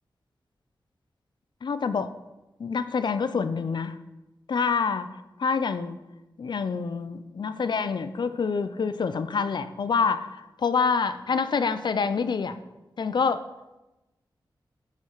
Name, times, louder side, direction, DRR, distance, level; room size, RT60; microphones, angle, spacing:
voice 1, 1.6-2.1 2.6-4.0 4.5-5.1 5.4-6.0 6.4-12.6 13.0-13.4, left 5 dB, 65° left, 12 dB, 0.5 m, -26 dB
7.6 x 7.3 x 4.9 m, 1.0 s
wide cardioid pair, 110°, 8 cm